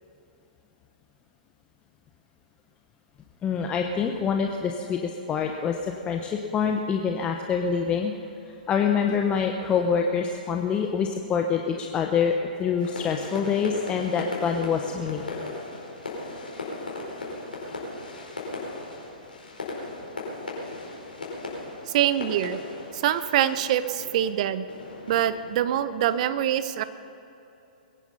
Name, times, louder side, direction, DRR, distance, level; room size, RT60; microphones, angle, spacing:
voice 1, 3.4-8.1 8.7-15.4, left 6 dB, 20° left, 3 dB, 1.0 m, -26 dB
sound 1, 12.8-26.1, left 2 dB, 80° left, 4.7 m, -37 dB
voice 2, 21.9-22.6 22.9-24.7 25.1-26.8, right 11 dB, 50° right, 13 dB, 0.8 m, -24 dB
21.5 x 10.5 x 5.6 m, 2.9 s
figure-of-eight pair, 120°, 5 cm